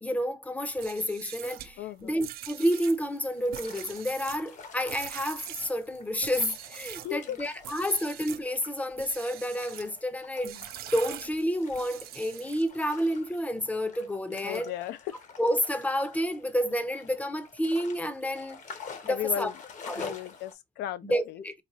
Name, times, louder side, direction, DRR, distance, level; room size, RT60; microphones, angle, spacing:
voice 1, 0.0-14.7 15.4-18.6 19.0-19.5 19.9-20.1 21.0-21.5, equal, 10° left, 0.5 m, -30 dB
sound 1, 0.7-7.2 7.6-8.5 8.9-9.9 10.4-12.8, right 13 dB, 65° right, 0.4 m, -43 dB
voice 2, 1.8-2.2 6.9-7.4 14.3-15.2 19.1-19.6 19.9-21.4, left 11 dB, 75° left, 0.4 m, -36 dB
sound 2, 3.0-20.5, left 5 dB, 45° left, 0.9 m, -49 dB
4.0 x 2.3 x 2.9 m
cardioid pair, 110°, 17 cm